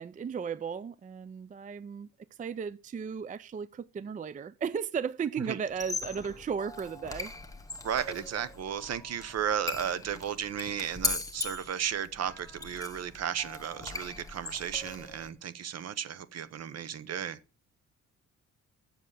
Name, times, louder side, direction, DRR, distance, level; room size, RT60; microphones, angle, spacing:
voice 1, 0.0-2.1 2.4-7.3, right 6 dB, 25° right, 0.4 m, -35 dB
Squeak, 5.7-15.3, left 3 dB, 10° left, 1.3 m, -39 dB
voice 2, 7.8-17.4, right 9 dB, 55° right, 0.9 m, -34 dB
7.6 x 6.8 x 6.5 m
cardioid pair, 90°, 30 cm